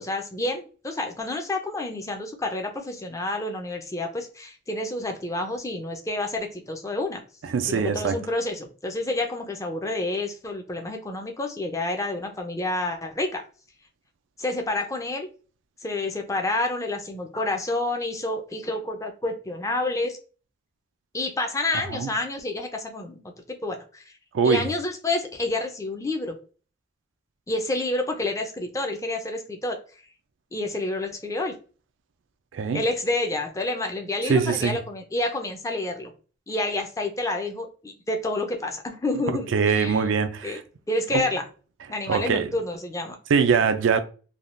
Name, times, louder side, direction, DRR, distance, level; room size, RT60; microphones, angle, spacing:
voice 1, 0.0-7.2 7.7-13.4 14.4-15.3 15.8-20.2 21.1-23.2 23.5-24.1 24.4-26.4 27.5-29.8 30.5-31.6 32.7-36.1 36.5-40.0 40.4-40.6 40.9-41.4 41.9-43.2, left 2 dB, 15° left, 0.5 m, -29 dB
voice 2, 7.5-8.2 21.9-22.1 24.3-24.6 32.5-32.8 34.2-34.8 39.5-40.6 41.1-41.2 42.1-42.5 43.3-44.0, right 6 dB, 85° right, 0.4 m, -22 dB
3.4 x 2.3 x 2.5 m
head